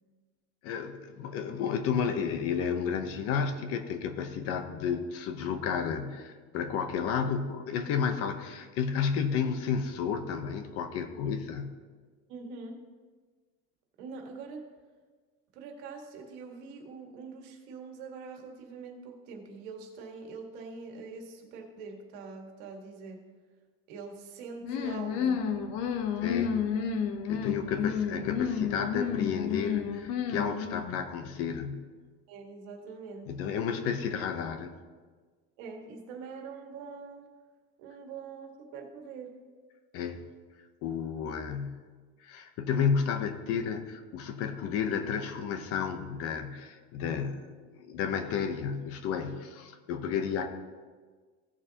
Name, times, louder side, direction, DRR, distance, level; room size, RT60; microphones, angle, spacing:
voice 1, 0.6-11.7 26.2-26.6 27.3-31.9 33.3-34.7 39.9-40.2 40.8-41.8 42.2-50.5, left 6 dB, 50° left, 8 dB, 0.9 m, -32 dB
voice 2, 12.3-12.8 14.0-14.7 15.5-23.2 23.9-25.4 27.5-27.9 32.3-33.3 35.6-37.3 37.8-39.3, right 4 dB, 70° right, 2 dB, 1.8 m, -44 dB
sound 1, 24.6-31.0, left 7 dB, 75° left, 1.0 m, -31 dB
16.0 x 6.9 x 2.9 m, 1.5 s
cardioid pair, 175°, 30 cm